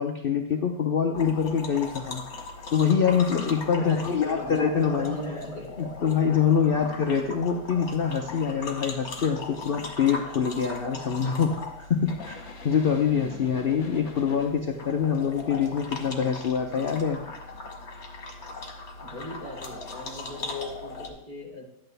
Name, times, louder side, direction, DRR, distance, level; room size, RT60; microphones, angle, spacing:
voice 1, 0.0-2.2 2.7-5.2 5.8-17.2, left 7 dB, 70° left, 2 dB, 0.5 m, -25 dB
sound 1, 1.1-21.1, left 3 dB, 45° left, 1.5 m, -39 dB
voice 2, 3.4-4.5 4.8-5.7 12.9-13.3 19.0-21.7, left 1 dB, 25° right, -2 dB, 2.7 m, -39 dB
11.5 x 8.9 x 3.4 m, 0.88 s
omnidirectional pair, 1.9 m